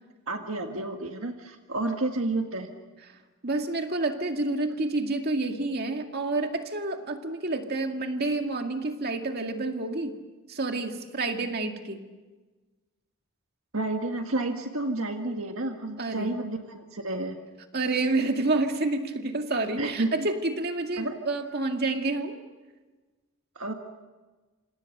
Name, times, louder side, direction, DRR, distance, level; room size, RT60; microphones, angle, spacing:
voice 1, 0.3-2.7 13.7-17.4 19.8-20.1 21.0-21.2 23.5-23.7, right 2 dB, 65° right, 4 dB, 1.7 m, -30 dB
voice 2, 3.4-10.1 10.5-12.0 16.0-16.3 17.7-22.4, right 2 dB, 45° right, 4 dB, 2.2 m, -29 dB
27.5 x 27.5 x 6.7 m, 1.3 s
head